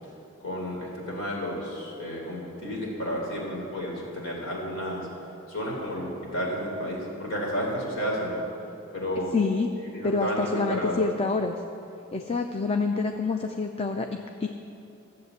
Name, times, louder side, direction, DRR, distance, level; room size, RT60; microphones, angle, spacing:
voice 1, 0.4-5.1 5.5-8.4 8.9-9.4 9.9-11.0, equal, 90° left, -3 dB, 3.8 m, -31 dB
voice 2, 9.3-9.7 10.0-11.6 12.1-14.5, left 4 dB, 30° left, 5 dB, 0.5 m, -27 dB
13.5 x 7.6 x 8.2 m, 2.7 s
head